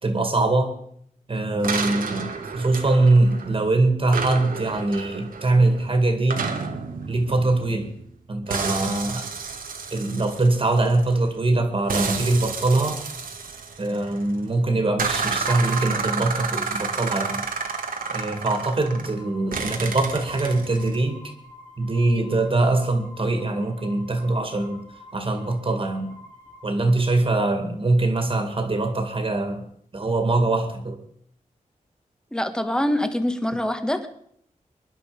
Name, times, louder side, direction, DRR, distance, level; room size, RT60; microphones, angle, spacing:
voice 1, 0.0-0.7 1.3-6.5 7.1-8.0 8.3-9.3 9.9-13.0 13.8-17.5 18.1-21.2 21.8-24.8 25.1-26.1 26.6-29.6 29.9-31.0, right 2 dB, 40° right, 6 dB, 2.3 m, -22 dB
sound 1, 1.6-3.7 4.1-8.1 8.5-11.3 11.9-14.3 15.0-19.2 19.5-21.0, right 5 dB, 85° right, 1.9 m, -30 dB
sound 2, 15.5-27.5, right 2 dB, 65° left, 5.3 m, -44 dB
voice 2, 32.3-34.1, left 1 dB, 5° left, 8 dB, 1.4 m, -24 dB
23.5 x 11.0 x 5.1 m, 0.67 s
wide cardioid pair, 125°, 14 cm